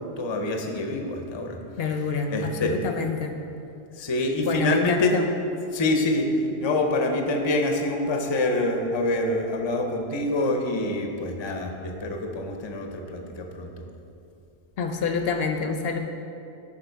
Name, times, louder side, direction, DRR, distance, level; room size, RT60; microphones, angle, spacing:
voice 1, 0.2-1.6 2.3-2.7 4.0-5.1 5.7-6.3 6.6-13.7, left 2 dB, 35° left, 3 dB, 0.5 m, -26 dB
voice 2, 1.8-3.3 4.4-5.3 14.8-16.0, left 5 dB, 65° left, 5 dB, 0.7 m, -27 dB
6.5 x 5.8 x 4.5 m, 2.7 s
omnidirectional pair, 1.1 m